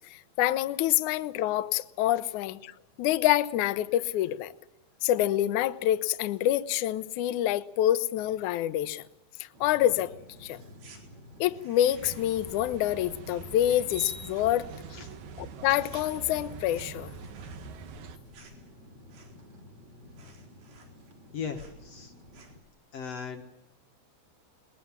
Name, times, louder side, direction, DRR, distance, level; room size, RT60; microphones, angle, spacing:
voice 1, 0.0-2.7 3.0-4.5 5.0-9.0 9.6-10.1 10.4-10.6 11.4-14.7 15.4-17.1, left 13 dB, 80° left, 1.8 m, -27 dB
sound 1, 9.5-22.6, left 1 dB, 40° right, 3.3 m, -51 dB
sound 2, 10.8-11.0 11.4-12.4 12.7-13.9 14.1-14.6 14.9-15.5 15.8-19.6 19.9-20.0 20.2-21.3 21.5-21.8 22.2-22.7, right 4 dB, 85° right, 6.3 m, -57 dB
sound 3, 11.9-18.2, right 6 dB, 65° right, 2.1 m, -44 dB
voice 2, 21.3-22.1 22.9-23.4, left 6 dB, 55° left, 1.9 m, -37 dB
22.0 x 21.0 x 7.4 m
omnidirectional pair, 4.6 m